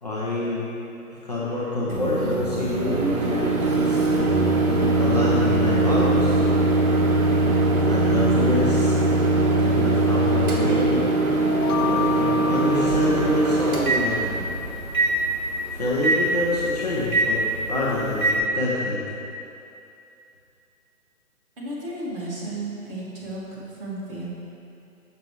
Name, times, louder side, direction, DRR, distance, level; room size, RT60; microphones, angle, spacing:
voice 1, 0.0-0.7 1.1-4.3 4.6-6.4 7.9-9.0 9.6-11.1 11.8-14.4 15.7-19.0, left 2 dB, 30° left, -8 dB, 0.6 m, -27 dB
Microwave oven, 1.9-18.4, right 2 dB, 70° right, 1.2 m, -21 dB
sound 1, 11.5-14.2, left 7 dB, 80° left, 0.6 m, -31 dB
voice 2, 21.6-23.4 23.8-24.3, right 2 dB, 35° right, -7 dB, 1.6 m, -33 dB
6.8 x 6.5 x 3.0 m, 2.7 s
hypercardioid pair, 155°, 45 cm